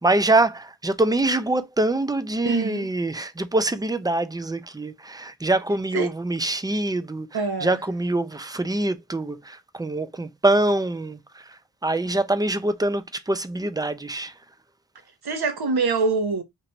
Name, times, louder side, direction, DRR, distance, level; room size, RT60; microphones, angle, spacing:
voice 1, 0.0-7.3 7.6-11.2 11.8-14.3, right 2 dB, 10° right, 0.4 m, -24 dB
voice 2, 2.4-2.9 5.9-6.1 7.3-7.8 15.2-16.4, right 4 dB, 60° right, 1.1 m, -24 dB
3.0 x 2.5 x 4.3 m
wide cardioid pair, 105°, 43 cm